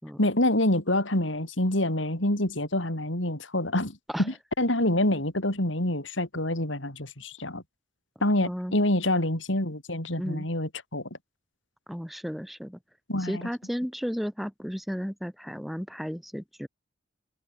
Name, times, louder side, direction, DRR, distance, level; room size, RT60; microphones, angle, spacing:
voice 1, 0.2-7.6 8.2-11.1 13.1-13.5, left 1 dB, 85° left, 5.7 m, -26 dB
voice 2, 8.4-8.8 10.2-10.5 11.9-12.8 13.2-16.7, equal, ahead, 3.6 m, -34 dB
open air
head